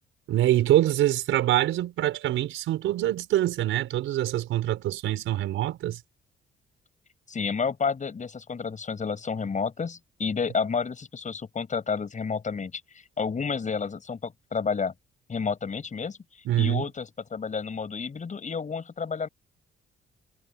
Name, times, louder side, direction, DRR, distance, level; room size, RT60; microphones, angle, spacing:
voice 1, 0.3-6.0 16.4-16.8, right 13 dB, 85° right, 5.0 m, -25 dB
voice 2, 7.3-12.7 13.2-14.9 15.3-16.2 16.5-19.3, left 5 dB, 40° left, 6.8 m, -30 dB
cardioid pair, 90°, 20 cm